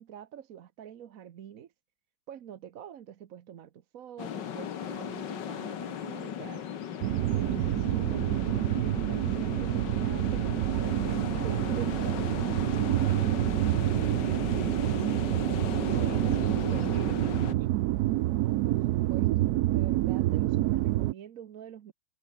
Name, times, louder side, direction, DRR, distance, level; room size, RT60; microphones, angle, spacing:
voice 1, 0.0-1.7 2.3-6.7 7.3-12.4 18.1-21.9, right 9 dB, 55° right, 1.0 m, -45 dB
sound 1, 4.2-17.5, left 9 dB, 60° left, 1.9 m, -37 dB
sound 2, 7.0-21.1, right 16 dB, 90° right, 0.8 m, -27 dB
voice 2, 12.8-13.3 15.8-17.7, right 3 dB, 40° right, 4.1 m, -45 dB
omnidirectional pair, 2.2 m